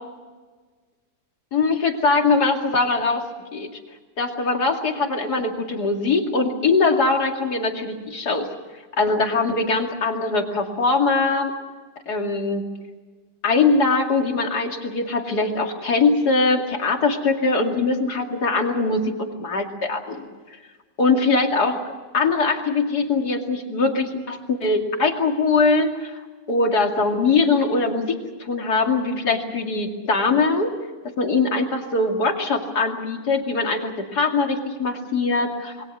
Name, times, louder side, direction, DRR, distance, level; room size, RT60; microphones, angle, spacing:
voice 1, 1.5-3.2 3.5-3.7 4.2-8.5 9.0-11.5 12.1-12.6 13.4-20.3 21.0-26.2 26.5-30.7 31.2-35.7, left 3 dB, 65° left, 3 dB, 3.0 m, -22 dB
27.0 x 21.5 x 6.2 m, 1.4 s
omnidirectional pair, 1.8 m